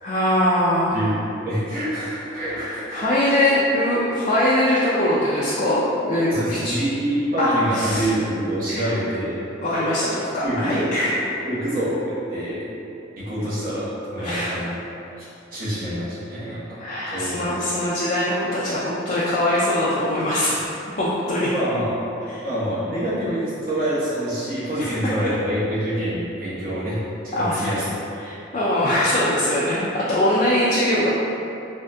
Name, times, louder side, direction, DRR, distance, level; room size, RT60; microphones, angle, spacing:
voice 1, 0.0-1.0 2.6-6.7 7.4-8.1 8.7-8.9 9.6-11.2 14.2-14.6 16.5-20.7 21.0-21.5 22.3-22.4 24.8-25.3 27.3-27.7 28.2-31.1, left 1 dB, 40° left, -8 dB, 0.3 m, -22 dB
voice 2, 1.4-3.0 6.3-9.4 10.4-10.9 11.4-12.6 13.2-13.9 14.1-14.8 15.2-15.3 15.5-16.8 17.1-17.4 21.5-21.9 22.4-28.0, right 1 dB, 50° right, -10 dB, 0.9 m, -26 dB
3.6 x 2.5 x 2.2 m, 2.8 s
head